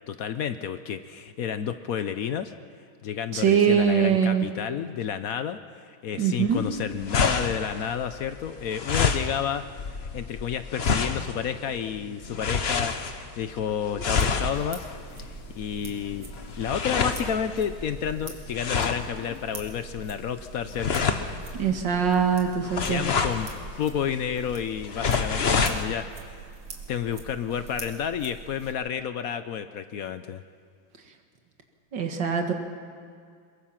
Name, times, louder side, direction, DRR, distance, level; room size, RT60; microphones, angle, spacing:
voice 1, 0.1-2.5 3.0-9.6 10.0-14.9 15.1-16.3 16.6-21.1 22.9-23.5 23.8-26.4 26.9-30.4, left 8 dB, 70° left, 10 dB, 0.8 m, -31 dB
voice 2, 3.3-4.5 6.2-6.6 21.6-23.0 31.9-32.5, right 7 dB, 60° right, 4 dB, 2.4 m, -22 dB
sound 1, 6.5-25.8, left 5 dB, 40° left, 1.0 m, -29 dB
sound 2, 14.0-28.7, right 4 dB, 85° right, 2.8 m, -44 dB
22.0 x 22.0 x 5.9 m, 2.2 s
omnidirectional pair, 2.2 m